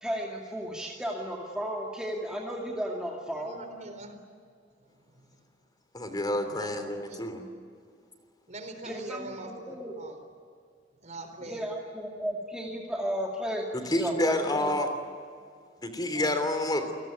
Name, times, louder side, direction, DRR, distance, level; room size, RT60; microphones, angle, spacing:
voice 1, 0.0-3.6 8.8-9.9 11.4-14.8 16.1-16.3, equal, 5° right, -2 dB, 2.5 m, -34 dB
voice 2, 3.4-4.2 5.1-5.2 6.5-7.3 8.5-10.2 11.0-11.7, right 1 dB, 40° right, 8 dB, 4.0 m, -43 dB
voice 3, 5.9-7.4 13.9-14.9 15.8-16.9, left 1 dB, 25° left, 7 dB, 3.1 m, -28 dB
28.0 x 20.0 x 9.3 m, 2.2 s
head